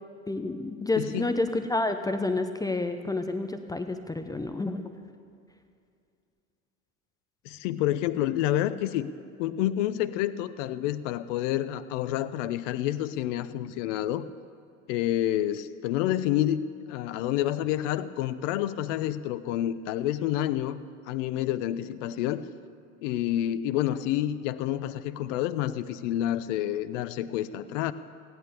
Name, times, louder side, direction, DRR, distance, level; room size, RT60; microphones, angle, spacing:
voice 1, 0.3-4.9, left 2 dB, 10° left, 7 dB, 0.7 m, -29 dB
voice 2, 7.4-9.1 9.4-14.2 14.9-16.6 16.9-20.8 21.1-22.4 23.0-27.9, left 12 dB, 60° left, 13 dB, 0.8 m, -28 dB
16.0 x 11.0 x 6.9 m, 2.4 s
hypercardioid pair, 85°, 42 cm